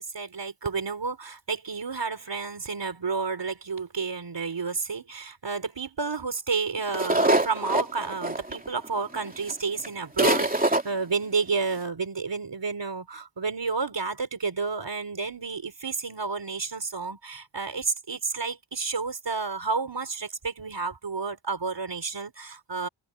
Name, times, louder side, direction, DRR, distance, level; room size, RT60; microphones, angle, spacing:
voice 1, 0.0-22.9, right 4 dB, 60° right, 3.7 m, -31 dB
sound 1, 6.9-8.9 9.5-9.6 9.8-9.9 10.2-10.8, right 2 dB, 15° right, 3.1 m, -23 dB
wide cardioid pair, 85°, 49 cm